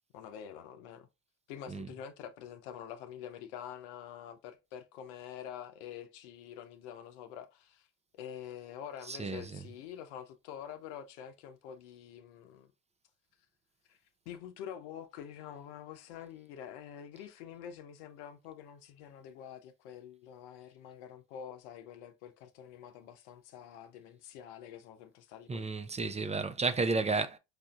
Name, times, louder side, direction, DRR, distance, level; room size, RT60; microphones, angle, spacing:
voice 1, 0.1-1.1 1.5-7.9 8.1-12.7 13.9-14.0 14.3-25.7, left 9 dB, 80° left, 0.7 m, -47 dB
voice 2, 9.1-9.7 25.5-27.4, right 3 dB, 20° right, 0.5 m, -32 dB
4.8 x 2.6 x 2.3 m
hypercardioid pair, 70°, 34 cm